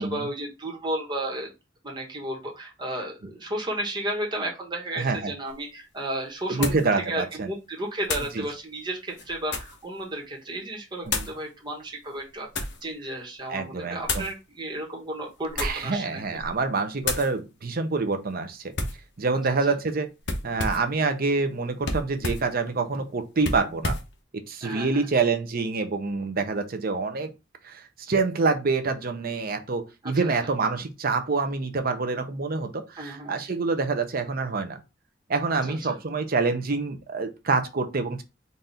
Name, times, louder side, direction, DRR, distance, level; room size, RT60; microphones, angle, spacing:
voice 1, 0.0-1.5 1.8-16.2 24.6-25.0 30.0-30.3 33.0-33.4 35.7-36.0, right 1 dB, 25° right, 1.4 m, -33 dB
voice 2, 4.9-5.3 6.5-7.5 8.3-8.4 11.1-11.3 13.5-14.3 15.6-18.7 19.2-20.1 20.4-23.9 24.5-27.3 27.6-34.8 35.3-38.2, right 4 dB, 50° right, 0.7 m, -26 dB
sound 1, 5.5-5.6 6.6-6.9 8.0-8.4 9.1-9.8 11.1-11.4 12.1-12.8 14.0-14.3 15.4-15.9 16.3-16.6 17.0-17.3 18.7-19.0 20.2-20.9 21.8-22.5 23.4-24.1, left 3 dB, 65° left, 0.9 m, -31 dB
4.1 x 2.6 x 3.4 m
head